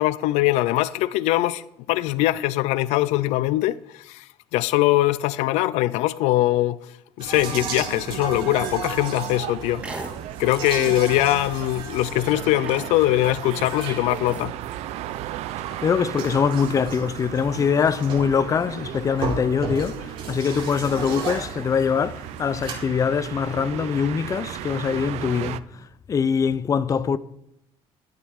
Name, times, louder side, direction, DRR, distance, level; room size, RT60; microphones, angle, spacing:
voice 1, 0.0-4.2 4.5-6.8 7.2-9.8 10.4-14.5, left 16 dB, 85° left, 0.4 m, -22 dB
sound 1, 7.2-22.7, right 5 dB, 50° right, 5.2 m, -36 dB
sound 2, 7.3-25.6, right 13 dB, 70° right, 0.5 m, -35 dB
sound 3, 9.2-9.4 9.8-10.1 10.4-10.7 11.2-11.3 11.5-12.0 12.7-13.7 14.1-14.8, right 2 dB, 10° right, 2.1 m, -38 dB
voice 2, 15.8-25.6 26.1-27.2, left 6 dB, 30° left, 0.5 m, -23 dB
13.5 x 11.5 x 3.7 m
cardioid pair, 115°, 11 cm